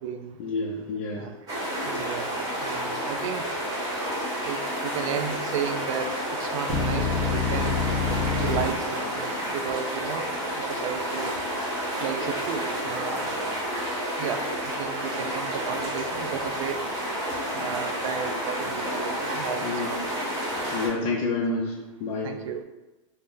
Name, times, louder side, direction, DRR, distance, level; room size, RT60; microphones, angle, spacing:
voice 1, 0.4-1.3 19.6-19.9 20.7-22.3, left 3 dB, 40° left, -4 dB, 0.4 m, -29 dB
sound 1, 1.5-20.9, equal, 20° right, 0.9 m, -30 dB
voice 2, 1.8-3.4 4.4-7.8 8.4-10.3 10.6-11.3 12.0-13.3 14.2-16.8 17.5-20.1 22.2-22.6, right 7 dB, 75° right, 7 dB, 0.4 m, -33 dB
sound 2, 6.7-8.6, left 5 dB, 45° right, 0.7 m, -26 dB
2.7 x 2.0 x 3.6 m, 1.1 s
supercardioid pair, 150°, 17 cm